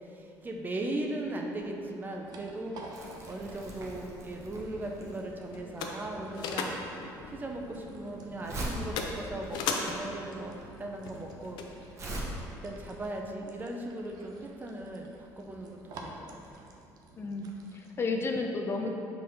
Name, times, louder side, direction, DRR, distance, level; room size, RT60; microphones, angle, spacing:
voice 1, 0.4-2.8 3.3-6.8 7.3-11.6 12.6-15.1 15.4-16.6, right 1 dB, 25° right, 1 dB, 0.7 m, -38 dB
sound 1, 1.8-17.9, right 2 dB, 60° right, 0.7 m, -52 dB
Crumpling crinkling, 2.9-12.2, right 1 dB, 40° right, 1.2 m, -42 dB
sound 2, 4.1-12.1, left 4 dB, 80° left, 0.6 m, -39 dB
voice 2, 17.2-18.9, left 3 dB, 30° left, 3 dB, 0.5 m, -32 dB
5.5 x 4.2 x 5.4 m, 2.7 s
cardioid pair, 120°, 7 cm